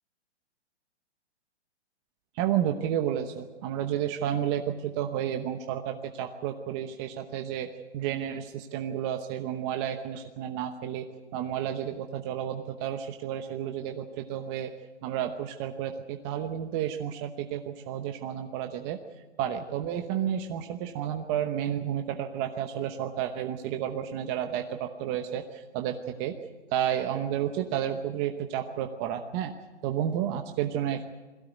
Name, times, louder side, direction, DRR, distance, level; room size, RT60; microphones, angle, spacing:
voice 1, 2.3-7.7 7.9-11.1 11.3-14.7 15.0-19.0 19.4-26.4 26.7-29.5 29.8-31.0, right 10 dB, 25° right, 5 dB, 1.0 m, -31 dB
22.0 x 16.0 x 9.3 m, 1.2 s
hypercardioid pair, 145°, 35 cm